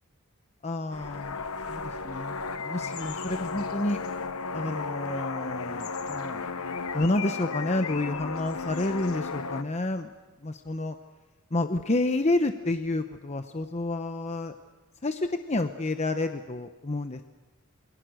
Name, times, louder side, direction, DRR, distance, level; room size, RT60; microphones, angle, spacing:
voice 1, 0.6-1.4 1.7-4.0 4.5-6.5 6.9-10.1 10.4-11.0 11.5-14.5 15.0-17.2, left 2 dB, 30° left, 8 dB, 0.8 m, -29 dB
sound 1, 0.9-9.6, left 4 dB, 70° left, 1.1 m, -34 dB
28.0 x 22.5 x 6.4 m, 1.2 s
head